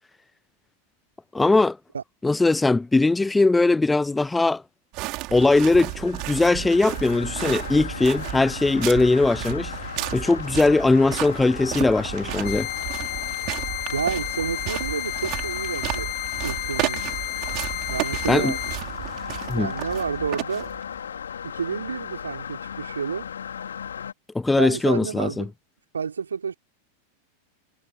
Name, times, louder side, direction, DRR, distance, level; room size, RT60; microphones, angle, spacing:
voice 1, 1.3-1.8 2.2-4.6 5.3-9.7 10.1-12.7 18.3-18.5 19.5-19.7 24.3-25.4, left 3 dB, 10° left, 0.7 m, -20 dB
sound 1, 4.9-21.0, right 22 dB, 40° right, 5.4 m, -33 dB
sound 2, 5.4-24.1, left 7 dB, 70° left, 4.3 m, -36 dB
sound 3, 12.4-18.8, left 17 dB, 35° left, 1.2 m, -32 dB
voice 2, 13.9-16.1 16.4-17.0 17.9-18.8 19.5-20.7 21.4-23.3 24.6-25.5 25.9-26.6, right 6 dB, 70° right, 3.4 m, -30 dB
figure-of-eight pair, 90°, 0 cm